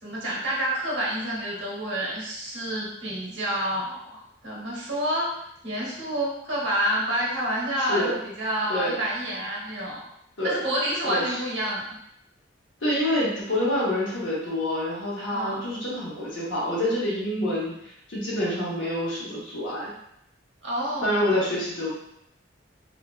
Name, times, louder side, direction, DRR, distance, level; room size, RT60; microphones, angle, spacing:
voice 1, 0.0-5.3 5.6-10.0 10.4-12.0 15.3-15.6 20.6-21.2, equal, 65° right, -5 dB, 0.9 m, -28 dB
voice 2, 7.8-8.2 8.7-9.0 10.4-10.6 11.0-11.4 12.8-17.8 18.1-19.9 21.0-22.2, left 1 dB, 75° left, -6 dB, 0.9 m, -27 dB
2.5 x 2.2 x 2.3 m, 0.75 s
head